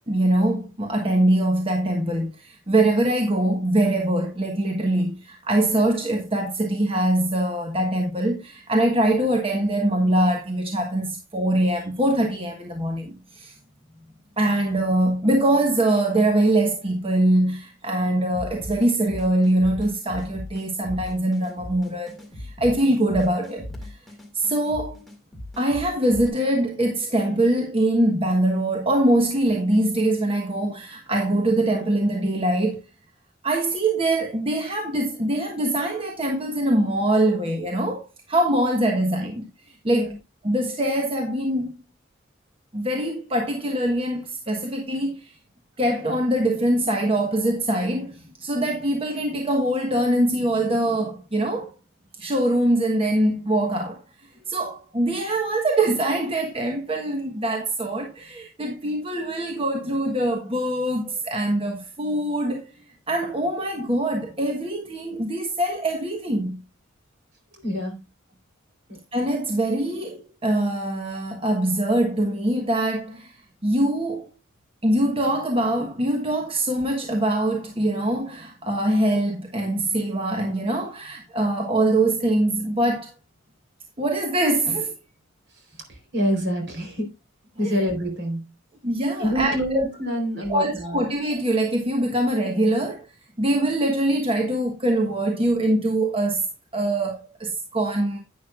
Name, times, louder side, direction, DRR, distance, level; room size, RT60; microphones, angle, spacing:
voice 1, 0.1-13.6 14.4-24.0 24.3-25.0 25.6-32.8 33.4-39.4 39.8-40.1 40.4-41.7 42.7-45.3 45.8-51.7 52.2-54.0 54.5-66.6 69.1-74.3 74.8-83.1 84.0-84.9 88.8-89.8 90.5-93.1 93.4-96.5 96.7-98.2, right 1 dB, 30° right, 1.2 m, -23 dB
sound 1, 18.3-26.3, left 1 dB, ahead, 2.1 m, -38 dB
voice 2, 67.6-68.0 68.9-69.0 85.5-87.1 87.6-88.4 89.2-91.0, equal, 60° right, 4.0 m, -26 dB
11.0 x 9.3 x 2.4 m
head